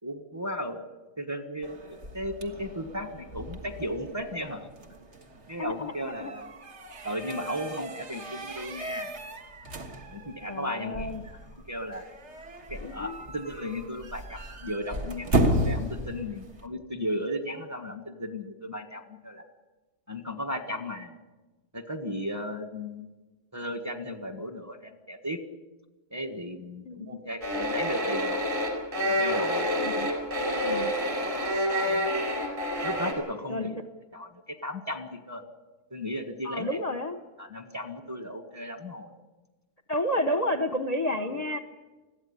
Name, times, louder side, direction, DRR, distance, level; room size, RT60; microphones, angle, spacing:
voice 1, 0.0-0.8 1.2-4.7 5.5-6.5 7.0-9.1 10.1-12.0 12.7-19.4 20.1-21.2 21.7-23.1 23.5-25.4 26.1-28.4 29.1-29.7 31.8-32.1 32.8-33.7 34.1-35.4 35.9-36.8 37.4-39.1 41.3-41.4, equal, 10° right, 7 dB, 1.3 m, -35 dB
sound 1, 1.6-16.7, right 1 dB, 50° right, 1.8 m, -34 dB
voice 2, 5.6-6.3 10.4-11.2 12.8-13.2 26.8-27.2 29.8-30.1 30.6-30.9 33.5-33.7 36.4-37.2 39.9-41.6, left 1 dB, 30° left, 8 dB, 0.9 m, -31 dB
sound 2, 27.4-33.1, equal, 30° right, 4.9 m, -28 dB
21.0 x 15.0 x 9.8 m, 1.2 s
omnidirectional pair, 1.6 m